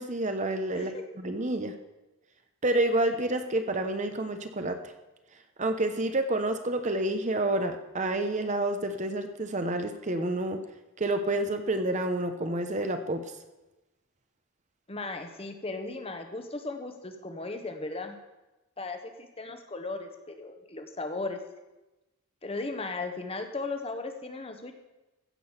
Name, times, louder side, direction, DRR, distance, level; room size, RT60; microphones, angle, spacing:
voice 1, 0.0-1.8 2.6-4.8 5.6-10.6 11.0-13.2, right 2 dB, 35° right, 7 dB, 0.8 m, -29 dB
voice 2, 0.7-1.0 14.9-18.2 18.8-21.4 22.4-24.7, left 3 dB, 25° left, 6 dB, 1.1 m, -36 dB
15.0 x 6.1 x 7.3 m, 1.0 s
head